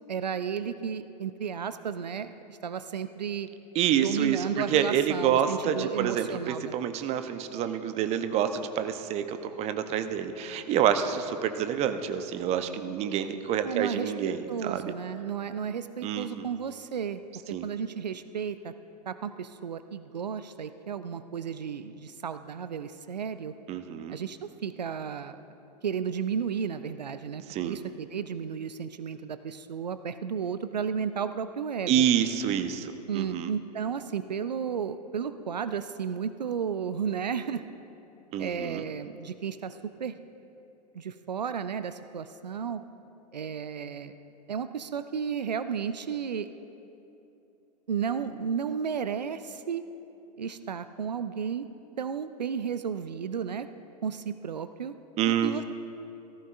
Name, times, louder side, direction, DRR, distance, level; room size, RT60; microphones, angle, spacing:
voice 1, 0.1-3.5 4.0-6.8 13.6-17.2 17.6-18.7 19.1-23.5 24.1-25.4 25.8-32.1 33.1-37.6 38.4-40.2 40.9-42.8 43.3-44.1 44.5-46.5 47.9-49.8 50.4-51.7 52.0-53.7 54.0-54.9 55.3-55.6, right 7 dB, 80° right, 11 dB, 0.5 m, -33 dB
voice 2, 3.7-14.9 16.0-16.5 17.5-17.7 23.7-24.2 27.5-27.8 31.9-33.5 38.3-38.9 55.2-55.6, right 9 dB, 30° right, 9 dB, 0.7 m, -28 dB
17.5 x 14.5 x 2.5 m, 2.9 s
figure-of-eight pair, 95°, 21 cm